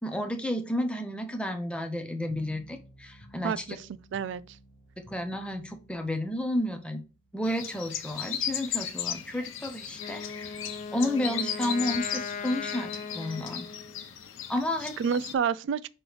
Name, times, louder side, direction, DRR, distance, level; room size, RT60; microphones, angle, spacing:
voice 1, 0.0-3.6 5.0-7.0 7.3-10.5 10.9-12.9 13.1-13.7 14.5-14.9, left 1 dB, 5° left, 0.9 m, -31 dB
sound 1, 2.3-13.4, left 1 dB, 55° left, 1.1 m, -56 dB
voice 2, 3.4-4.4 15.0-15.9, right 7 dB, 65° right, 0.3 m, -29 dB
sound 2, 7.4-15.3, left 9 dB, 85° left, 0.9 m, -36 dB
Wind instrument woodwind instrument, 9.9-14.1, left 5 dB, 40° left, 0.4 m, -38 dB
6.1 x 3.2 x 4.8 m
head